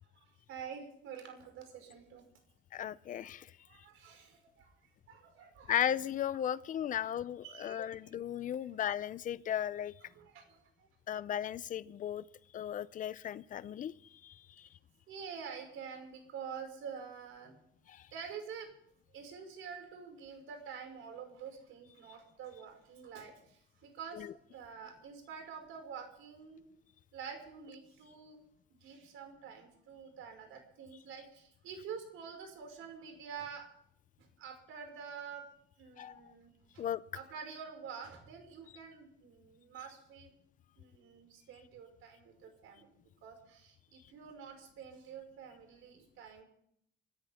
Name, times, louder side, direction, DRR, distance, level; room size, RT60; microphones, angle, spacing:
voice 1, 0.1-2.3 3.7-4.7 5.1-5.7 6.9-7.1 7.4-8.2 10.0-10.9 15.1-17.6 18.1-18.7 19.1-26.6 27.1-28.4 28.7-33.7 34.2-35.4 35.8-36.8 37.1-40.3 40.8-42.9 43.2-46.4, right 6 dB, 75° right, 4 dB, 5.6 m, -48 dB
voice 2, 2.7-3.5 5.7-9.9 11.1-12.2 12.5-14.7 17.9-18.1 24.1-24.3 36.0-36.3 36.8-37.0, left 10 dB, 40° left, 17 dB, 0.6 m, -36 dB
26.5 x 14.0 x 3.6 m, 0.71 s
cardioid pair, 180°, 21 cm